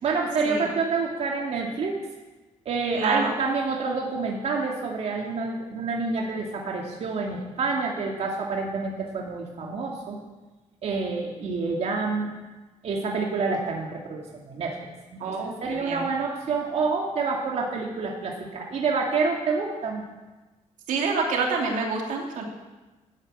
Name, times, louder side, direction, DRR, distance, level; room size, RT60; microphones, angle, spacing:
voice 1, 0.0-2.0 2.7-10.2 10.8-12.3 12.8-14.8 15.1-20.0, right 4 dB, 55° right, 0 dB, 2.5 m, -28 dB
voice 2, 2.9-3.3 15.2-16.1 20.9-22.4, right 4 dB, 90° right, 1 dB, 3.0 m, -27 dB
13.5 x 9.9 x 8.6 m, 1.1 s
cardioid pair, 145°, 13 cm